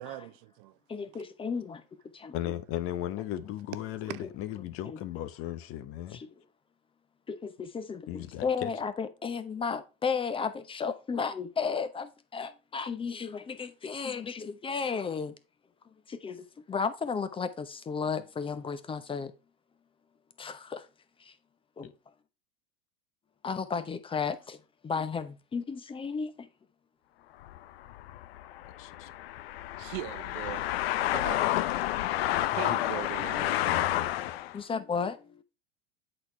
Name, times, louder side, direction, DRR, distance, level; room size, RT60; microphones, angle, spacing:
voice 1, 0.0-1.0 4.1-4.2 29.8-30.7 31.0-31.4 32.6-33.9, right 16 dB, 55° right, 0.5 m, -41 dB
voice 2, 0.9-1.8 2.1-2.3 4.8-5.0 6.1-6.3 7.3-15.3 16.1-19.3 20.4-20.9 21.2-21.3 21.8-21.9 23.4-24.6 24.8-26.5 34.5-35.4, left 5 dB, 15° left, 0.8 m, -34 dB
voice 3, 2.3-6.2 8.1-8.7 28.8-29.1 32.5-32.8 33.3-34.3, left 12 dB, 45° left, 0.9 m, -37 dB
sound 1, 27.4-34.6, left 14 dB, 70° left, 0.6 m, -30 dB
7.9 x 4.4 x 4.3 m
hypercardioid pair, 105°, 31 cm